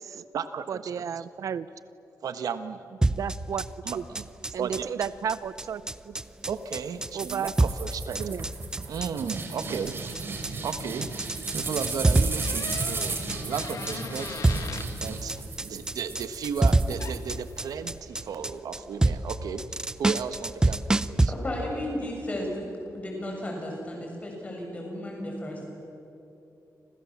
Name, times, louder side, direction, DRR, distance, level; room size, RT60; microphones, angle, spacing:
voice 1, 0.1-0.9 1.2-1.3 2.2-3.0 3.8-4.2 4.6-4.9 6.5-8.2 8.9-10.0 10.6-11.2 11.5-14.4 15.0-21.3, right 6 dB, 80° right, 10 dB, 1.3 m, -34 dB
voice 2, 0.7-1.7 3.2-3.6 3.9-4.0 4.5-6.1 7.1-7.5 8.2-8.4, right 8 dB, 65° right, 15 dB, 0.6 m, -32 dB
sound 1, 3.0-21.3, right 2 dB, 10° right, 0.6 m, -27 dB
sound 2, 7.2-17.7, right 4 dB, 40° right, 3.7 m, -35 dB
sound 3, 12.4-14.9 17.0-17.2, left 6 dB, 65° left, 1.6 m, -40 dB
voice 3, 21.4-22.5 22.9-25.7, left 1 dB, 25° left, 0 dB, 6.9 m, -34 dB
30.0 x 27.0 x 7.4 m, 2.9 s
wide cardioid pair, 180°, 6 cm